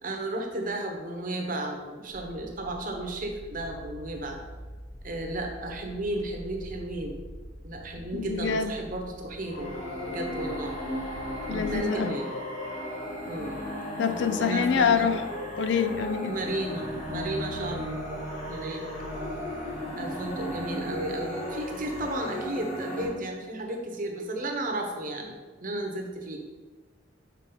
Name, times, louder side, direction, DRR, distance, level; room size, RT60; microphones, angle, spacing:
voice 1, 0.0-4.4 5.0-7.2 7.6-9.7 10.1-10.7 11.5-12.3 13.3-13.6 14.0-15.1 16.2-18.0 18.5-18.8 20.0-25.3 25.6-26.4, right 1 dB, 45° right, 2 dB, 0.9 m, -33 dB
sound 1, 2.1-11.8, equal, 85° left, 1.8 m, -45 dB
voice 2, 8.1-8.7 11.5-12.1 14.0-15.2 15.6-16.3, left 7 dB, 65° left, 10 dB, 0.4 m, -26 dB
sound 2, 9.4-23.1, equal, 40° left, 1.3 m, -35 dB
5.7 x 4.5 x 3.9 m, 1.3 s
head